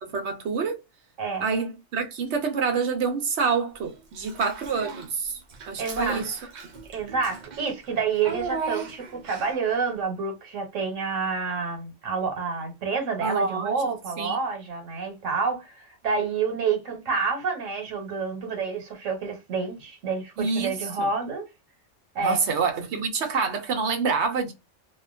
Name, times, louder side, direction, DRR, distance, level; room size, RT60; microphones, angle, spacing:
voice 1, 0.0-0.8 1.4-5.4 5.7-6.4 13.2-13.7 14.2-14.4 20.4-21.1 22.2-24.5, right 5 dB, 70° right, 0.9 m, -27 dB
Child speech kid speaking / Bathtub (filling or washing), 4.2-5.1 5.5-9.7, right 4 dB, 50° right, 0.5 m, -37 dB
voice 2, 5.8-6.5 6.9-21.5 22.1-22.4, right 5 dB, 90° right, 1.1 m, -28 dB
2.4 x 2.2 x 2.4 m
omnidirectional pair, 1.3 m